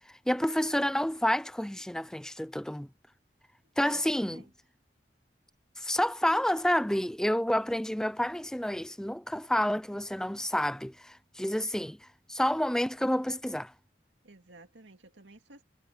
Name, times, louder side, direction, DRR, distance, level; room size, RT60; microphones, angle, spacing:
voice 1, 0.3-2.9 3.8-4.4 5.8-13.7, equal, 5° left, 0.5 m, -29 dB
voice 2, 3.8-4.5 14.2-15.6, right 2 dB, 85° right, 2.2 m, -53 dB
head